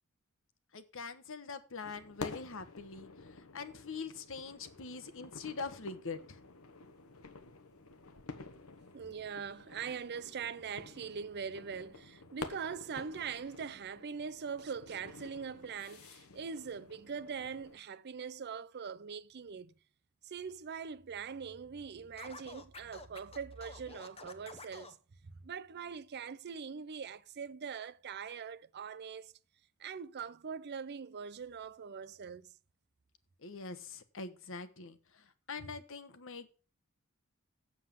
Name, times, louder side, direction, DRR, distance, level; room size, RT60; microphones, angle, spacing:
voice 1, 0.7-3.1 3.5-6.4 33.4-35.0 35.5-36.5, left 4 dB, 65° left, 1.2 m, -43 dB
sound 1, 1.8-17.8, left 3 dB, 85° left, 1.2 m, -50 dB
voice 2, 8.9-19.7 20.2-25.0 25.4-29.3 29.8-32.4, right 6 dB, 50° right, 0.5 m, -42 dB
Scratching (performance technique), 22.2-25.0, left 4 dB, 30° left, 0.9 m, -50 dB
7.6 x 7.3 x 7.3 m
head